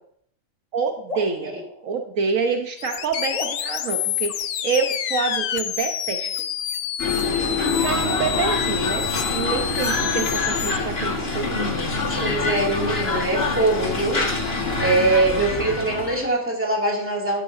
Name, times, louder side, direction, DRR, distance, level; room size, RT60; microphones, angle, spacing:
voice 1, 0.7-1.5 1.8-6.3 7.7-9.0 9.3-11.7 15.5-15.6, right 5 dB, 70° right, 5 dB, 1.3 m, -27 dB
sound 1, 1.1-2.7 3.3-5.0, left 2 dB, 25° left, 1.9 m, -38 dB
sound 2, 2.8-10.8, left 10 dB, 80° left, 0.4 m, -28 dB
sound 3, 7.0-16.3, left 3 dB, 45° left, 1.7 m, -25 dB
voice 2, 12.2-14.2 14.8-17.4, right 2 dB, 10° right, -2 dB, 2.3 m, -22 dB
12.5 x 10.0 x 2.6 m, 0.63 s
omnidirectional pair, 1.5 m